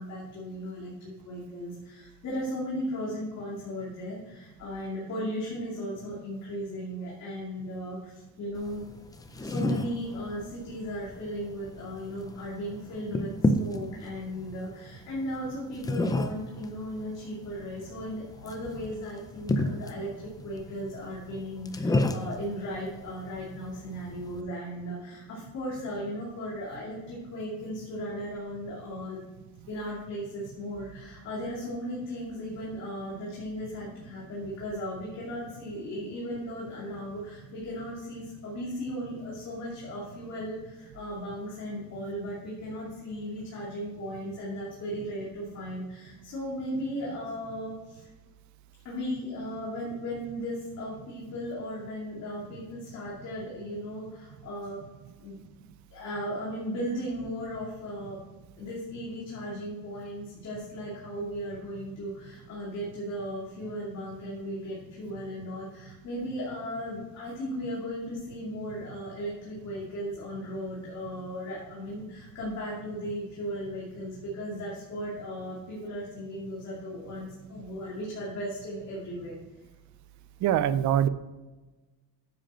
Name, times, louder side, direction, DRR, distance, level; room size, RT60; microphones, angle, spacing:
voice 1, 0.0-8.8 9.4-29.2 29.7-48.1 48.8-54.8 55.2-55.4 55.9-58.2 58.6-79.4, equal, 40° left, -6 dB, 2.6 m, -36 dB
sound 1, 8.6-24.4, left 1 dB, 10° left, 0.4 m, -33 dB
voice 2, 80.4-81.1, right 10 dB, 50° right, 14 dB, 0.5 m, -23 dB
10.0 x 7.7 x 4.4 m, 1.2 s
cardioid pair, 180°, 38 cm